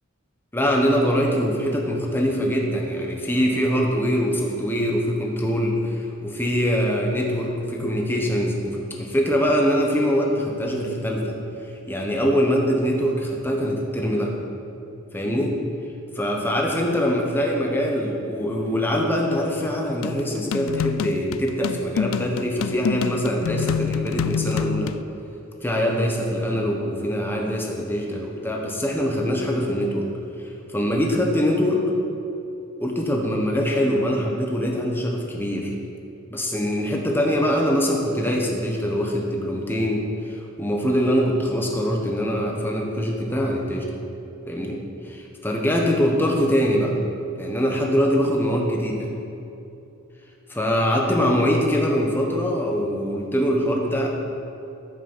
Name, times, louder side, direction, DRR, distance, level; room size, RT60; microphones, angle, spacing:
voice 1, 0.5-11.4 11.9-14.3 15.1-15.6 16.1-24.9 25.6-30.1 30.4-31.8 32.8-35.7 36.3-43.9 44.5-45.2 45.4-46.9 47.4-49.1 50.5-54.1, equal, 10° left, 0 dB, 1.3 m, -23 dB
sound 1, 20.0-25.0, left 7 dB, 75° left, 0.3 m, -27 dB
13.5 x 6.2 x 5.7 m, 2.8 s
head